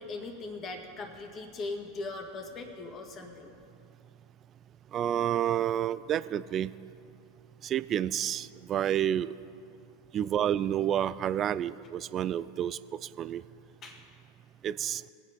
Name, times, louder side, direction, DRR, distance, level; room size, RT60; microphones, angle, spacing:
voice 1, 0.0-3.5 13.8-14.1, left 3 dB, 35° left, 4 dB, 1.8 m, -40 dB
voice 2, 4.9-6.7 7.6-9.3 10.1-12.8 13.2-13.4 14.6-15.0, right 10 dB, 35° right, 16 dB, 0.3 m, -29 dB
20.5 x 8.1 x 3.9 m, 2.5 s
hypercardioid pair, 90°, 0 cm